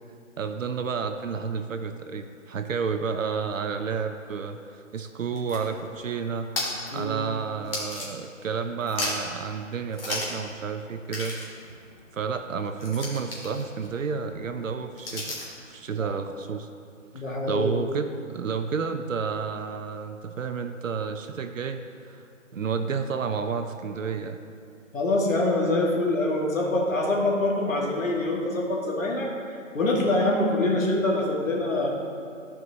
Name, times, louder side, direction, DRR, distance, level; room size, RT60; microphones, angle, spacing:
voice 1, 0.4-4.6 4.9-6.5 6.9-11.4 12.1-15.4 15.7-16.7 17.1-22.3 22.5-24.4, right 5 dB, 75° right, 8 dB, 0.6 m, -31 dB
sound 1, 5.1-8.5 8.8-9.4 9.9-10.5 10.7-10.8 11.1-15.6, left 2 dB, 45° left, 1.7 m, -36 dB
voice 2, 17.1-17.7 24.9-29.3 29.7-31.9, left 2 dB, 75° left, -1 dB, 1.7 m, -25 dB
14.0 x 4.8 x 2.8 m, 2.4 s
hypercardioid pair, 170°, 40 cm